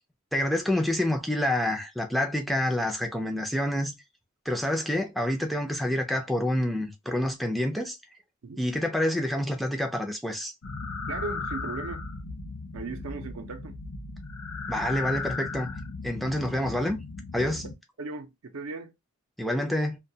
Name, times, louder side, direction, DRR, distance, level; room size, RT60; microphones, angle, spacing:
voice 1, 0.3-3.9 4.5-8.0 8.6-10.5 14.7-15.7 16.0-17.0 17.3-17.6 19.4-20.0, left 1 dB, ahead, 0.4 m, -27 dB
sound 1, 10.6-17.7, left 3 dB, 75° left, 0.5 m, -36 dB
voice 2, 11.1-12.0 12.7-13.8 18.0-18.9, right 3 dB, 80° right, 0.5 m, -37 dB
2.3 x 2.2 x 2.7 m
head